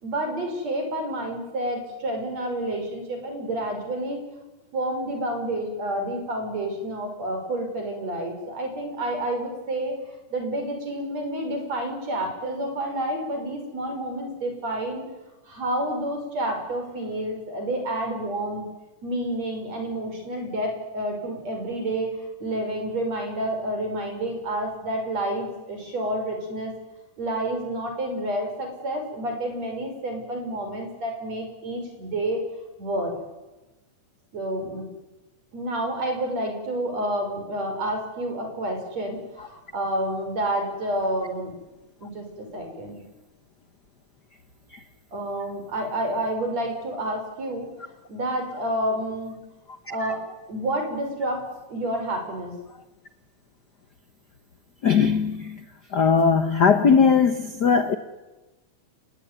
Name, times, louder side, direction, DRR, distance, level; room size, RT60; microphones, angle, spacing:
voice 1, 0.0-4.2 4.7-10.0 10.3-15.0 15.4-18.6 19.0-26.7 27.2-32.4 32.8-33.1 34.3-34.8 35.5-41.5 42.0-43.0 45.1-47.7 48.1-49.3 49.9-50.2 50.5-51.4 51.7-52.5, right 1 dB, 60° right, 6.7 m, -29 dB
voice 2, 54.8-55.6 55.9-58.0, left 6 dB, 60° left, 1.1 m, -19 dB
29.5 x 18.0 x 9.7 m
omnidirectional pair, 3.5 m